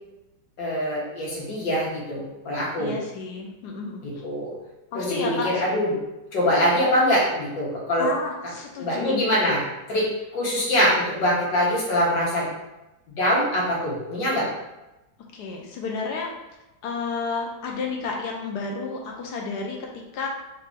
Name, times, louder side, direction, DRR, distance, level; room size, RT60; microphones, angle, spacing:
voice 1, 0.6-3.0 4.0-4.5 4.9-5.9 6.3-8.1 8.8-9.6 9.9-12.5 13.2-14.5, equal, 90° left, -6 dB, 2.0 m, -23 dB
voice 2, 2.8-4.0 4.9-5.6 8.0-9.3 15.3-16.3 16.8-20.3, left 4 dB, 70° left, 0 dB, 1.1 m, -31 dB
4.1 x 2.7 x 3.6 m, 0.98 s
omnidirectional pair, 1.9 m